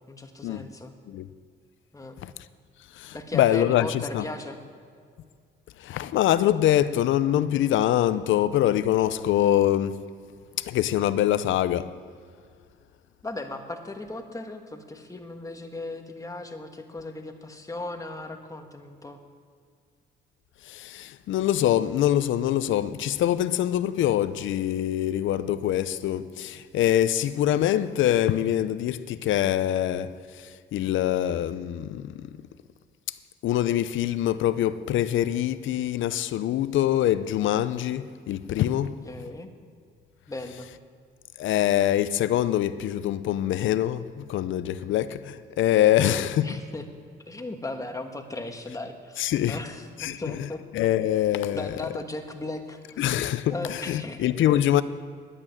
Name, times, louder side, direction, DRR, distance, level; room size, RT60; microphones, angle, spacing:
voice 1, 0.1-0.9 1.9-2.2 3.1-4.6 13.2-19.2 39.0-39.5 40.3-40.7 45.9-46.8 47.3-50.6 51.5-53.0 53.5-54.2 54.5-54.6, left 2 dB, 15° left, 1.5 m, -37 dB
voice 2, 2.9-4.3 5.8-10.0 10.6-11.9 20.6-32.4 33.1-33.2 33.4-38.9 41.4-46.6 49.2-49.6 50.0-50.5 50.7-51.7 53.0-54.8, left 12 dB, 75° left, 0.6 m, -24 dB
11.0 x 8.8 x 9.9 m
cardioid pair, 90°, 20 cm